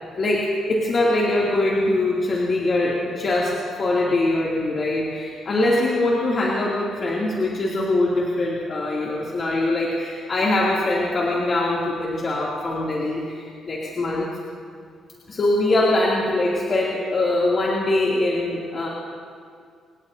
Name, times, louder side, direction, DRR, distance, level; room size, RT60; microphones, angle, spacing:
voice 1, 0.1-14.3 15.3-18.9, left 2 dB, 45° left, -5 dB, 2.7 m, -22 dB
26.5 x 19.0 x 2.8 m, 2.1 s
cardioid pair, 90°, 0 cm